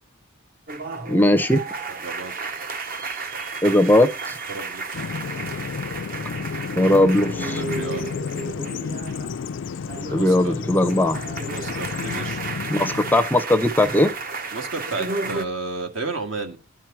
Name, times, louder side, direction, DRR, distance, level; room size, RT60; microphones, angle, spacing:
sound 1, 0.7-9.4 9.7-15.5, right 3 dB, 45° right, 0.8 m, -33 dB
voice 1, 1.1-1.6 3.6-4.4 6.8-7.6 10.1-11.2 12.7-14.1, left 1 dB, 10° left, 0.5 m, -18 dB
voice 2, 2.0-2.3 4.5-5.1 7.5-8.3 10.1-10.5 11.5-12.4 14.5-16.6, right 3 dB, 70° right, 1.8 m, -32 dB
Bird vocalization bird call bird song, 4.9-13.3, left 5 dB, 65° left, 0.4 m, -31 dB
11.0 x 4.6 x 5.9 m
head